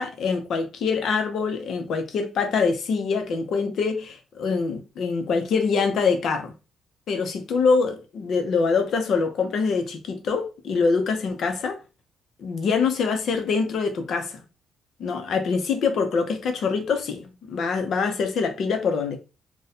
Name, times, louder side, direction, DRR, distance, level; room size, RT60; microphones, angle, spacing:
voice 1, 0.0-6.5 7.1-11.8 12.4-14.4 15.0-19.2, left 5 dB, 65° left, 0.7 m, -24 dB
2.6 x 2.3 x 4.1 m
cardioid pair, 90°, 0 cm